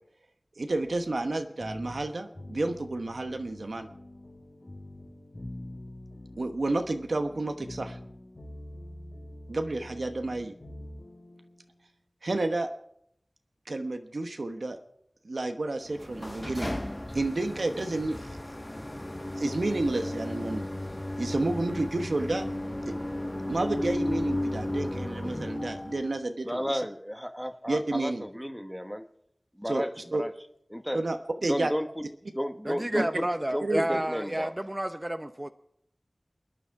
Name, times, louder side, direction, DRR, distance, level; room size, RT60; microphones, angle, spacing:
voice 1, 0.6-3.9 6.4-8.0 9.5-10.5 12.2-12.7 13.7-14.8 15.2-16.7 17.1-18.4 19.4-20.6 21.2-22.5 22.9-23.0 23.5-26.8 27.7-28.2 29.6-29.8 30.1-30.2 30.9-31.7 33.6-34.0, right 2 dB, 85° right, 6 dB, 1.1 m, -30 dB
sound 1, 0.7-11.7, left 1 dB, 65° left, 4.7 m, -45 dB
sound 2, 15.8-26.2, left 1 dB, 25° left, 0.8 m, -34 dB
voice 2, 26.4-29.0 29.6-30.3 30.7-31.1 31.5-32.0 32.3-33.2 33.5-34.6, equal, ahead, 7 dB, 1.2 m, -33 dB
voice 3, 32.6-35.5, right 1 dB, 25° right, 8 dB, 0.8 m, -30 dB
29.5 x 10.0 x 4.7 m, 0.76 s
wide cardioid pair, 45°, 0 cm